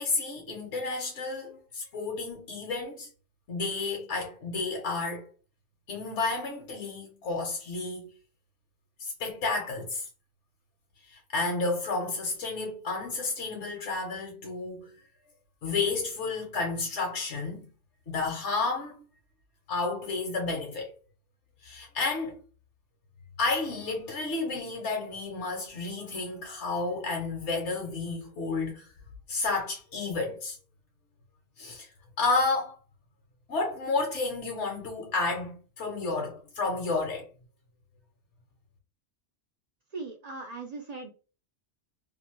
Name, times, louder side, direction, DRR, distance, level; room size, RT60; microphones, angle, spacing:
voice 1, 0.0-3.1 3.5-5.3 5.9-8.1 9.0-10.1 11.1-14.9 15.6-17.7 18.1-19.0 19.7-20.9 21.6-22.4 23.4-28.9 29.3-30.6 31.6-31.9 32.2-32.8 33.5-37.3, left 3 dB, 75° left, 1.1 m, -31 dB
voice 2, 39.9-41.1, right 3 dB, 75° right, 0.3 m, -39 dB
2.7 x 2.5 x 2.9 m
omnidirectional pair, 1.2 m